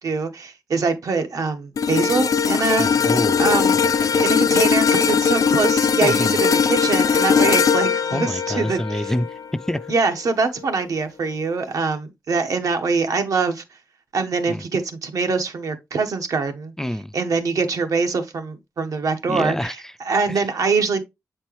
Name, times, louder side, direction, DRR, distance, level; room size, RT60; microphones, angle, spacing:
voice 1, 0.0-3.1 3.4-3.8 4.2-9.0 9.9-13.6 14.1-16.7 17.1-19.7 20.0-21.0, right 4 dB, 80° right, 1.1 m, -23 dB
sound 1, 1.8-10.1 10.5-10.8, left 6 dB, 75° left, 0.5 m, -20 dB
voice 2, 2.8-4.3 6.0-6.4 8.1-9.9 14.5-14.6 16.8-17.1 19.3-20.0 20.3-20.5, left 1 dB, 10° left, 0.3 m, -28 dB
7.6 x 4.4 x 3.0 m
wide cardioid pair, 115°, 6 cm